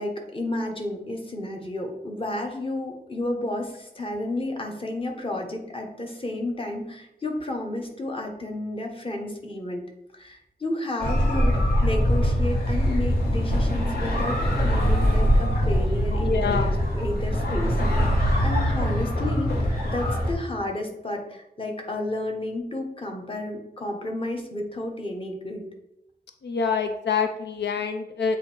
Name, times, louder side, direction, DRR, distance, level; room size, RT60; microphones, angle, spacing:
voice 1, 0.0-9.8 10.1-25.6, left 1 dB, 30° left, 1 dB, 1.2 m, -32 dB
sound 1, 11.0-20.3, equal, 60° left, 2.0 m, -23 dB
voice 2, 16.2-16.7 26.4-28.4, left 5 dB, 90° left, 6 dB, 0.5 m, -26 dB
8.1 x 2.7 x 4.4 m, 0.83 s
wide cardioid pair, 100°, 17 cm